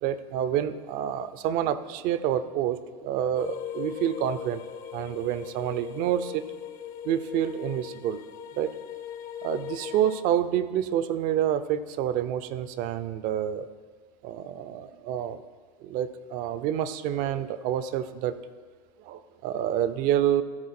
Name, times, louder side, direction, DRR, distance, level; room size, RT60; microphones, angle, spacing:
voice 1, 0.0-4.6 4.9-6.4 7.0-8.2 8.6-8.7 9.4-13.7 14.2-15.4 15.8-18.3 19.1-20.4, right 10 dB, 50° right, 13 dB, 0.5 m, -28 dB
sound 1, 3.3-10.2, left 9 dB, 45° left, 0.7 m, -39 dB
13.0 x 4.5 x 4.3 m, 1.5 s
hypercardioid pair, 115°, 19 cm